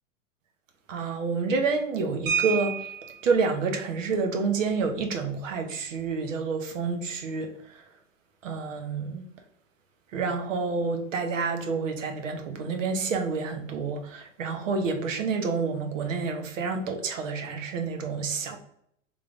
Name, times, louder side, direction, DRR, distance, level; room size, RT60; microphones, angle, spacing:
voice 1, 0.9-2.9 3.2-7.8 8.4-9.2 10.1-18.6, right 4 dB, 70° right, 5 dB, 0.9 m, -28 dB
sound 1, 2.3-3.3 4.8-4.9 5.2-5.4 5.8-6.1, right 7 dB, 35° right, 1.1 m, -30 dB
3.7 x 3.2 x 2.4 m, 0.68 s
hypercardioid pair, 105°, 40 cm